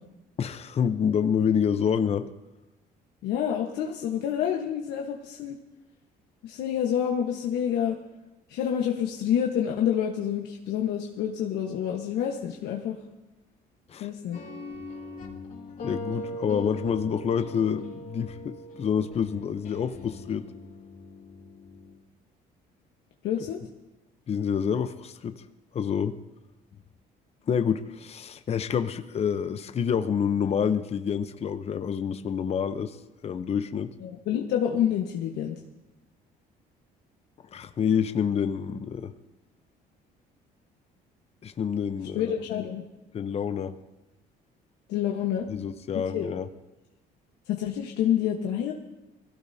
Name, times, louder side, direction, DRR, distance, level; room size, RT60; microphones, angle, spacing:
voice 1, 0.4-2.3 13.9-14.1 15.8-20.5 24.3-25.3 25.7-26.2 27.5-33.0 33.2-33.9 37.5-39.1 41.4-42.3 43.1-43.8 45.5-46.5, left 7 dB, 40° left, 9 dB, 0.8 m, -27 dB
voice 2, 3.2-5.6 6.4-8.0 8.5-13.0 14.0-14.4 23.2-23.6 34.0-35.5 42.1-42.8 44.9-45.5 46.1-46.3 47.5-48.7, left 9 dB, 85° left, 0 dB, 1.3 m, -28 dB
sound 1, 14.3-22.0, left 1 dB, 55° left, 2.7 m, -40 dB
21.5 x 16.0 x 2.8 m, 1.0 s
cardioid pair, 110°, 17 cm